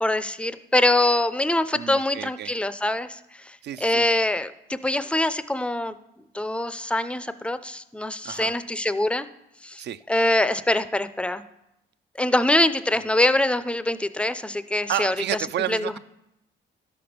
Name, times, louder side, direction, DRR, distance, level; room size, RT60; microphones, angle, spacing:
voice 1, 0.0-3.2 3.8-5.9 6.3-9.3 9.6-9.8 10.1-11.4 12.2-15.1 15.7-15.8, left 1 dB, 5° left, 13 dB, 0.5 m, -23 dB
voice 2, 1.7-2.5 3.6-4.1 8.2-8.5 9.8-10.0 14.9-16.0, right 11 dB, 60° right, 14 dB, 0.5 m, -30 dB
12.0 x 6.0 x 5.1 m, 0.87 s
cardioid pair, 90°, 20 cm